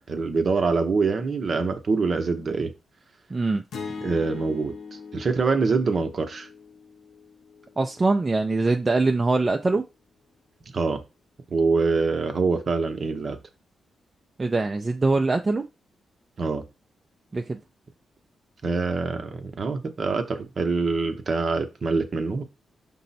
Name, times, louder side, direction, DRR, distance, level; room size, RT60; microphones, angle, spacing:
voice 1, 0.1-2.7 4.0-4.7 5.1-6.5 10.7-11.0 11.5-13.4 16.4-16.6 18.6-22.4, right 4 dB, 55° right, 0.8 m, -25 dB
voice 2, 3.3-3.6 7.8-9.8 14.4-15.6 17.3-17.6, right 3 dB, 35° right, 0.4 m, -23 dB
sound 1, 3.7-8.0, left 5 dB, 80° left, 0.8 m, -40 dB
5.3 x 2.1 x 4.0 m
supercardioid pair, 50°, 0 cm